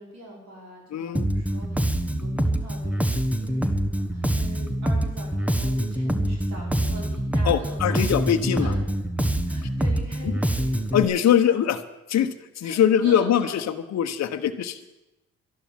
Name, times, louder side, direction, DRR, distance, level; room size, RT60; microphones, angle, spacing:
voice 1, 0.0-8.3 8.6-8.9 9.4-11.7 12.6-13.7, right 1 dB, 65° right, -2 dB, 5.5 m, -43 dB
voice 2, 0.9-1.3 7.5-8.7 10.9-11.8 12.1-12.3 12.6-13.6 13.9-14.8, left 9 dB, 60° left, 7 dB, 1.1 m, -22 dB
Bass guitar, 1.1-11.0, right 1 dB, 5° right, 1.1 m, -25 dB
12.0 x 11.5 x 7.4 m, 0.98 s
cardioid pair, 90°, 30 cm